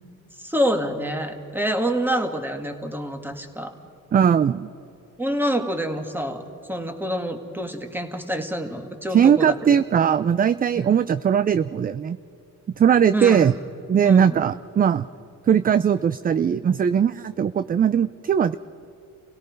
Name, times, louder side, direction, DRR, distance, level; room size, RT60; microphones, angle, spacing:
voice 1, 0.4-3.7 5.2-6.4 6.7-9.6 10.7-10.9 13.1-13.5 14.0-14.4, equal, 5° right, 5 dB, 2.1 m, -27 dB
voice 2, 4.1-4.7 9.1-12.2 12.8-13.5 13.9-15.1 15.5-18.5, right 8 dB, 30° right, 14 dB, 0.4 m, -19 dB
30.0 x 17.5 x 5.2 m, 2.6 s
cardioid pair, 105°, 32 cm